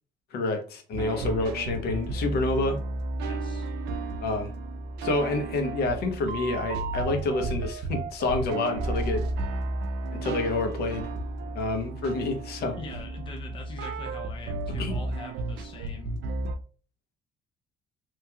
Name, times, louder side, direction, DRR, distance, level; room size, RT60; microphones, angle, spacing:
voice 1, 0.3-2.8 4.2-4.5 5.0-9.2 10.1-11.1 11.5-12.8 14.8-14.9, left 2 dB, 70° left, 0.8 m, -28 dB
sound 1, 0.9-16.6, right 2 dB, 85° right, 0.4 m, -33 dB
voice 2, 3.2-3.7 12.8-16.2, left 3 dB, 30° left, 0.6 m, -43 dB
3.0 x 2.8 x 2.3 m
cardioid pair, 110°, 17 cm